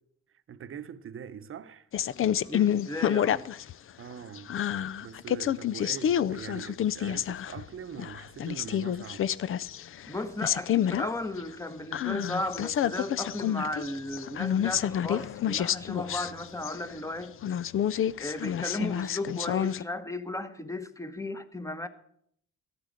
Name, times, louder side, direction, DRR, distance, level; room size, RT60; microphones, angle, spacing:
voice 1, 0.5-1.9 4.0-4.6 5.0-9.3, right 8 dB, 45° right, 0.9 m, -43 dB
sound 1, 1.9-3.7 4.1-7.6 8.0-10.1 10.4-11.1 11.4-11.5 11.9-17.0 17.4-19.8, left 10 dB, 45° left, 0.5 m, -29 dB
voice 2, 2.5-3.5 10.1-17.3 18.2-21.9, left 2 dB, 10° left, 1.1 m, -35 dB
14.0 x 8.7 x 6.6 m
cardioid pair, 90°, 30 cm